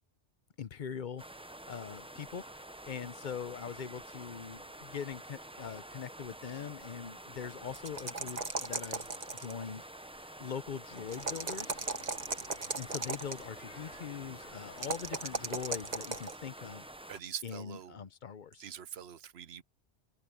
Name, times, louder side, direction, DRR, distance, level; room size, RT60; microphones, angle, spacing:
voice 1, 0.6-1.2 1.7-2.4 2.9-9.1 9.3-9.8 10.2-11.8 12.7-16.9 17.4-18.6, left 7 dB, 50° left, 0.8 m, -42 dB
sound 1, 1.2-17.2, right 1 dB, 10° right, 0.3 m, -49 dB
sound 2, 7.7-9.6 11.1-13.4 14.8-16.4, right 3 dB, 35° right, 1.5 m, -36 dB
sound 3, 10.9-16.2, left 3 dB, 80° left, 3.2 m, -56 dB
voice 2, 17.1-18.0 18.6-19.6, right 9 dB, 65° right, 1.0 m, -44 dB
omnidirectional pair, 1.2 m